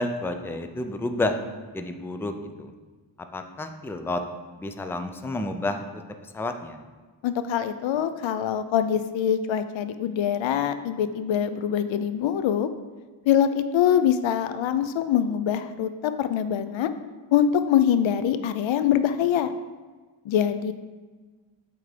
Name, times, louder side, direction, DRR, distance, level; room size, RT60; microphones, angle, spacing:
voice 1, 0.0-1.4 1.7-2.7 3.3-4.2 4.6-6.8, left 2 dB, 5° left, 7 dB, 0.4 m, -30 dB
voice 2, 7.2-12.7 13.3-16.9 17.3-19.5 20.2-20.7, left 9 dB, 80° left, 11 dB, 0.5 m, -24 dB
7.8 x 3.6 x 5.0 m, 1.4 s
wide cardioid pair, 105°, 45 cm